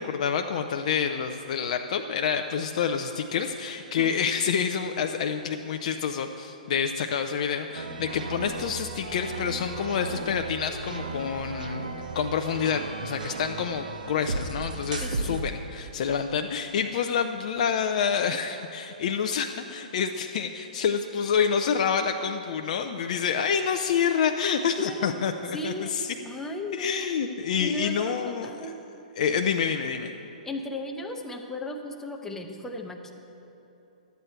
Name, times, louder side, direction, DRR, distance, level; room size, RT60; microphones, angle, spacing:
voice 1, 0.0-11.9 12.1-26.2 26.7-28.7 29.2-30.1, left 7 dB, 55° left, 6 dB, 0.4 m, -28 dB
sound 1, 7.7-15.5, right 3 dB, 75° right, 0.9 m, -35 dB
voice 2, 15.0-15.4 24.6-25.1 25.5-25.9 26.2-27.1 27.6-28.7 30.5-33.1, left 1 dB, 10° left, 3 dB, 0.8 m, -36 dB
12.0 x 8.1 x 4.4 m, 3.0 s
figure-of-eight pair, 120°, 4 cm